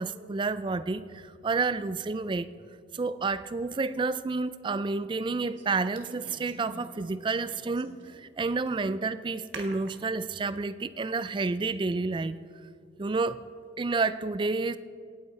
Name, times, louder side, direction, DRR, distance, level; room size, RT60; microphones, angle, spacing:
voice 1, 0.0-2.5 2.9-12.4 13.0-13.4 13.8-14.8, right 3 dB, 25° right, 0.3 m, -30 dB
sound 1, 3.4-3.5 5.2-7.0 7.3-8.3 8.7-8.8 9.5-10.1, right 3 dB, 85° right, 1.4 m, -46 dB
17.0 x 8.5 x 4.3 m
head